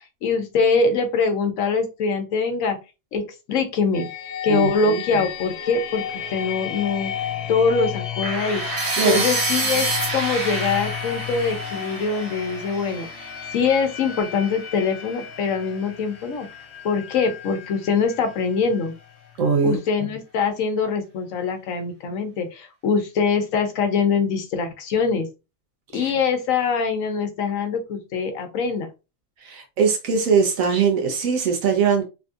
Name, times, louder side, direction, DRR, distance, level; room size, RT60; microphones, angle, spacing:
voice 1, 0.2-2.8 3.1-4.1 4.4-8.6 9.0-16.5 16.8-18.9 19.6-25.3 25.9-28.9, left 5 dB, 80° left, 1.1 m, -23 dB
sound 1, 3.9-19.6, left 9 dB, 65° left, 0.8 m, -33 dB
voice 2, 4.5-5.0 9.0-9.3 19.4-19.8 25.9-26.1 29.4-32.0, right 6 dB, 85° right, 1.1 m, -21 dB
sound 2, 8.2-14.1, right 3 dB, 45° right, 1.0 m, -28 dB
3.4 x 2.6 x 2.4 m
omnidirectional pair, 1.4 m